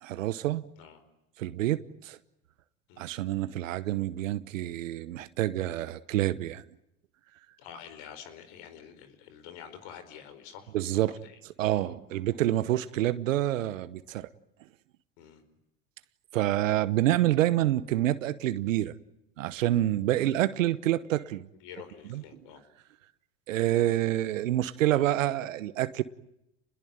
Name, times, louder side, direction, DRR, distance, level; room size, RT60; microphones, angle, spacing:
voice 1, 0.0-0.6 1.4-2.2 3.0-6.6 10.7-11.2 11.4-14.3 16.3-18.9 19.4-21.5 22.1-22.2 23.5-26.0, right 14 dB, 80° right, 1.1 m, -27 dB
voice 2, 7.6-11.4 11.7-12.2 15.2-15.4 20.1-20.3 21.6-22.6, left 8 dB, 65° left, 4.7 m, -48 dB
30.0 x 21.0 x 9.1 m
hypercardioid pair, 75°, 38 cm